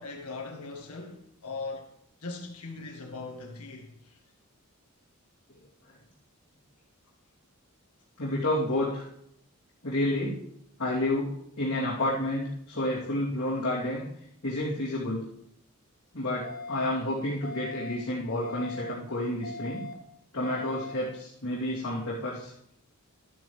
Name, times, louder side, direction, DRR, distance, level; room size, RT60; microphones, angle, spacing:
voice 1, 0.0-1.9 2.2-4.2, left 3 dB, 85° left, 1.7 m, -40 dB
voice 2, 8.2-9.1 9.8-10.4 10.8-11.3 11.6-14.0 14.4-15.2 16.1-19.8 20.3-22.5, left 1 dB, 65° left, 3.0 m, -30 dB
sound 1, 16.4-16.9 17.4-17.9 18.4-18.9 19.4-19.9 20.4-20.9, left 2 dB, 45° left, 1.9 m, -40 dB
12.5 x 10.0 x 3.3 m
head